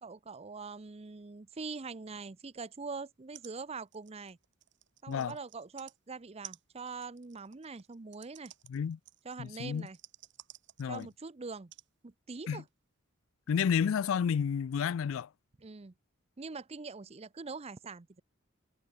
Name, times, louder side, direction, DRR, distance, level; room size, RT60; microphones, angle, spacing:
voice 1, 0.0-4.4 5.0-8.5 9.2-10.0 10.8-11.7 12.0-12.7 15.6-15.9 16.4-18.2, right 4 dB, 30° right, 0.6 m, -43 dB
sound 1, 3.1-3.2 3.3-3.5 3.8-6.0 6.4-11.2 11.7-11.9 12.7-12.8, right 13 dB, 55° right, 3.8 m, -54 dB
voice 2, 9.4-9.9 10.8-11.1 12.5-12.6 13.5-15.3, left 7 dB, 70° left, 0.3 m, -30 dB
head